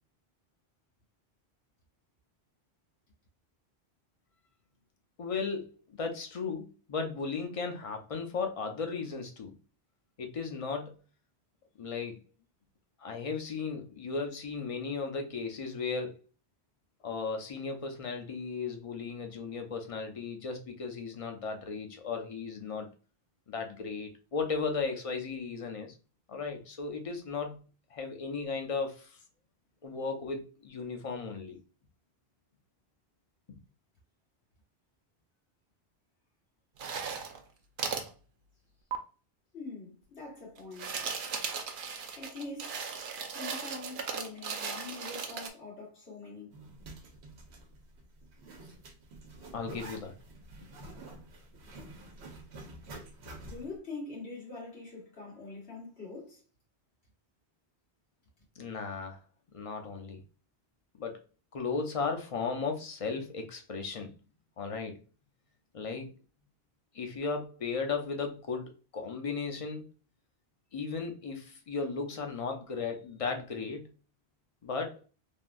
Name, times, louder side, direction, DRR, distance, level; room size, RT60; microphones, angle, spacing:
voice 1, 5.2-9.5 10.2-11.0 11.8-12.2 13.0-16.2 17.0-22.9 23.5-25.9 26.3-27.6 27.9-29.2 29.8-31.6 33.5-33.6 49.5-50.2 58.6-59.2 59.5-60.2 61.0-61.2 61.5-64.1 64.6-65.0 65.7-66.1 66.9-69.9 70.7-73.9 74.6-75.0, left 4 dB, 40° left, 0.5 m, -36 dB
sound 1, 36.8-37.4 37.8-38.1 38.9-39.0 40.6-45.5, right 6 dB, 60° right, 0.6 m, -37 dB
voice 2, 39.5-41.0 42.1-42.8 43.3-46.6 53.4-56.4, left 3 dB, 85° left, 1.7 m, -44 dB
Zipper (clothing), 46.5-53.8, right 2 dB, 80° right, 1.0 m, -48 dB
3.5 x 2.2 x 2.5 m
omnidirectional pair, 1.1 m